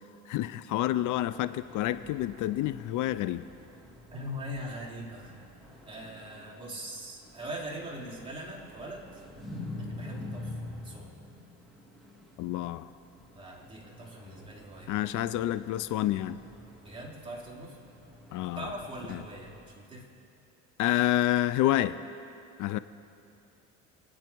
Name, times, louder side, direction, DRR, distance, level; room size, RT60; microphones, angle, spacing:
voice 1, 0.3-3.4 12.4-12.9 14.9-16.4 18.3-18.7 19.1-19.2 20.8-22.0 22.6-22.8, left 14 dB, 65° left, 14 dB, 0.5 m, -28 dB
sound 1, 1.0-19.6, left 2 dB, ahead, 3.0 m, -47 dB
voice 2, 4.1-5.3 5.9-9.1 9.8-11.1 13.3-14.9 16.8-17.8 18.5-20.0, equal, 15° right, -4 dB, 3.6 m, -41 dB
28.0 x 9.6 x 4.6 m, 2.7 s
cardioid pair, 115°, 32 cm